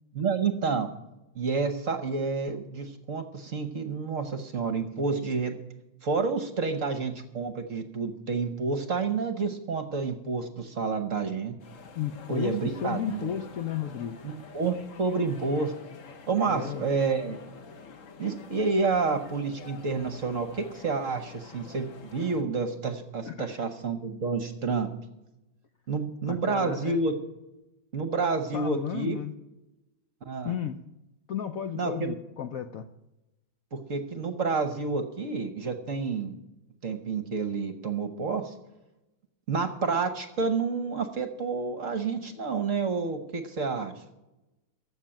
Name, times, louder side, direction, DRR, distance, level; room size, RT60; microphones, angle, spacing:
voice 1, 0.1-0.9 1.3-5.6 6.0-11.5 12.3-13.3 14.2-15.7 16.3-17.4 18.2-24.9 25.9-27.1 27.9-29.2 30.3-30.5 31.8-32.1 33.7-36.4 36.8-38.5 39.5-43.9, right 4 dB, 50° right, 8 dB, 1.1 m, -29 dB
sound 1, 11.6-22.4, left 5 dB, 45° left, 1.2 m, -47 dB
voice 2, 12.0-14.2 16.5-16.8 23.3-23.6 26.3-27.0 28.5-29.3 30.4-30.8 31.3-32.9, left 9 dB, 85° left, 8 dB, 0.7 m, -33 dB
15.0 x 6.6 x 8.8 m, 0.96 s
omnidirectional pair, 2.3 m